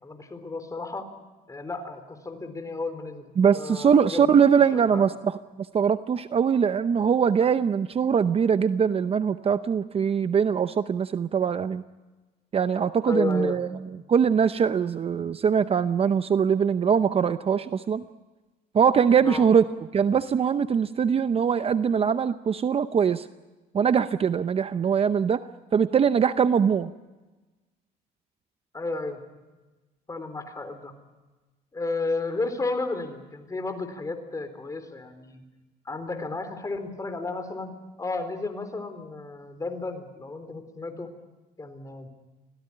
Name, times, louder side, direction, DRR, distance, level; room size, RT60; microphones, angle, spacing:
voice 1, 0.0-1.1 1.5-4.3 4.6-5.1 13.1-13.6 19.2-19.5 28.7-29.2 30.1-30.9 31.7-35.4 35.9-41.1 41.6-42.1, left 3 dB, 20° left, 8 dB, 3.8 m, -33 dB
voice 2, 3.4-5.4 5.7-11.8 12.5-13.7 14.1-18.0 18.7-19.6 19.9-23.3 23.7-25.4 25.7-26.9, right 7 dB, 35° right, 12 dB, 0.7 m, -22 dB
26.0 x 17.5 x 9.9 m, 1.2 s
cardioid pair, 110°, 17 cm